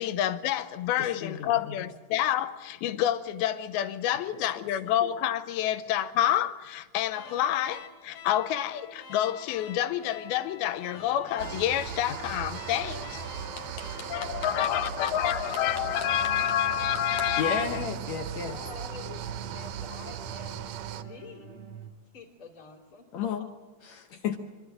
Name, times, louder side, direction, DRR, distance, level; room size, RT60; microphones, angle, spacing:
voice 1, 0.0-13.2 14.1-17.8, left 11 dB, 90° left, 2.7 m, -28 dB
voice 2, 1.0-1.5 13.6-14.3 17.2-18.6 23.1-23.5 23.8-24.4, left 6 dB, 70° left, 1.7 m, -33 dB
sound 1, 7.1-15.4, left 6 dB, 55° left, 3.9 m, -47 dB
sound 2, 10.9-21.9, right 7 dB, 55° right, 1.1 m, -45 dB
sound 3, 11.4-21.0, right 8 dB, 85° right, 1.5 m, -38 dB
voice 3, 18.5-19.2 19.5-21.6 22.1-23.3 24.3-24.4, left 5 dB, 35° left, 3.2 m, -47 dB
25.0 x 13.0 x 8.9 m
omnidirectional pair, 4.2 m